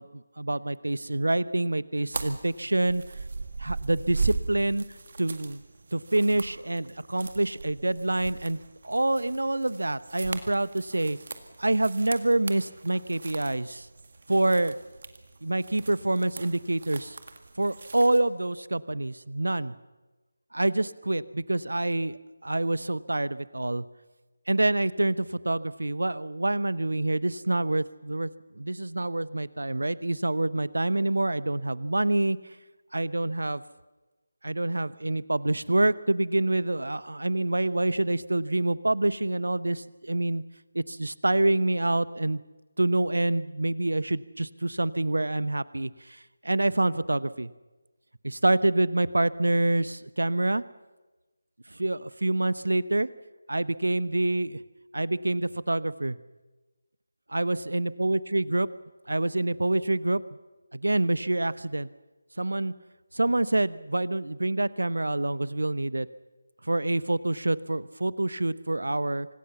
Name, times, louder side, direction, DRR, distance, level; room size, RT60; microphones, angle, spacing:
voice 1, 0.0-3.0 3.6-4.8 5.2-5.6 5.9-8.6 8.8-11.2 11.6-13.9 14.3-14.8 15.4-17.2 17.6-19.7 20.5-23.8 24.5-32.4 32.9-33.6 34.4-40.4 40.7-42.4 42.8-47.5 48.2-50.6 51.7-53.1 53.5-54.6 54.9-56.2 57.3-58.7 59.1-60.2 60.7-61.9 62.4-62.7 63.1-66.1 66.6-69.3, right 2 dB, 65° right, 18 dB, 0.9 m, -26 dB
sound 1, 2.1-18.2, right 4 dB, 45° right, 2.0 m, -38 dB
25.5 x 18.5 x 7.1 m, 1.2 s
figure-of-eight pair, 160°, 0 cm